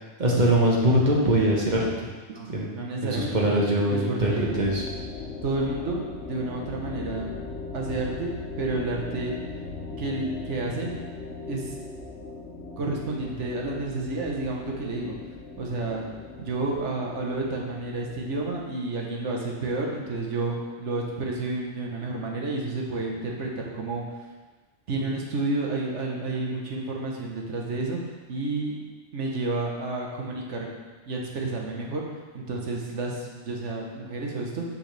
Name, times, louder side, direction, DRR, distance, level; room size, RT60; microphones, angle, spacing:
voice 1, 0.2-1.9 2.5-2.7 3.0-4.8, right 1 dB, 40° right, -3 dB, 1.3 m, -22 dB
voice 2, 2.3-3.5 3.9-4.7 5.4-7.3 7.7-9.3 10.0-10.9 11.5-11.8 12.8-15.2 15.6-16.1 16.4-24.0 24.9-28.0 28.3-28.8 29.1-30.7 31.1-32.0 32.3-34.6, right 2 dB, 85° right, -1 dB, 1.3 m, -30 dB
sound 1, 4.3-18.6, left 3 dB, 80° left, 1.1 m, -39 dB
6.5 x 5.8 x 3.3 m, 1.3 s
omnidirectional pair, 1.2 m